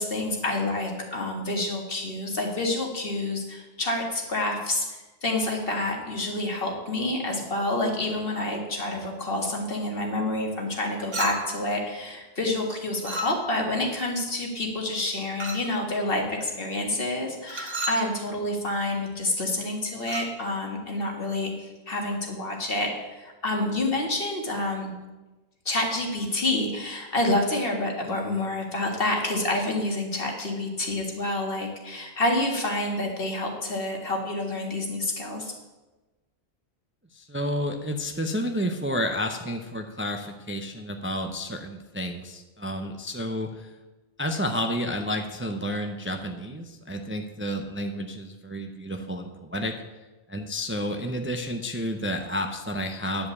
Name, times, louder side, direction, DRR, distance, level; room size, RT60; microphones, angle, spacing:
voice 1, 0.0-24.9 25.7-35.5, left 2 dB, 60° left, 1 dB, 2.0 m, -28 dB
Chink clink, 11.1-11.7 13.0-13.7 15.4-15.8 17.5-18.1 20.0-20.3, right 1 dB, 45° right, 1.2 m, -33 dB
voice 2, 37.1-43.7 44.2-49.8 50.3-53.3, equal, 15° right, 5 dB, 0.5 m, -30 dB
10.0 x 5.2 x 8.3 m, 1.1 s
omnidirectional pair, 1.1 m